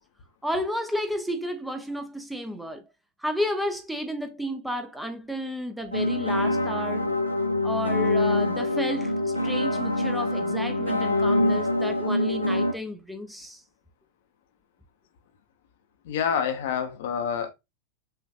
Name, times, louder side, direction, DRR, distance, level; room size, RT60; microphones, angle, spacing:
voice 1, 0.4-2.8 3.2-7.1 7.6-13.6, equal, 5° right, 0.6 m, -32 dB
sound 1, 5.9-12.7, left 1 dB, 90° left, 0.6 m, -25 dB
voice 2, 16.0-17.5, left 7 dB, 55° left, 0.7 m, -27 dB
5.7 x 2.4 x 2.4 m
figure-of-eight pair, 90°, 0 cm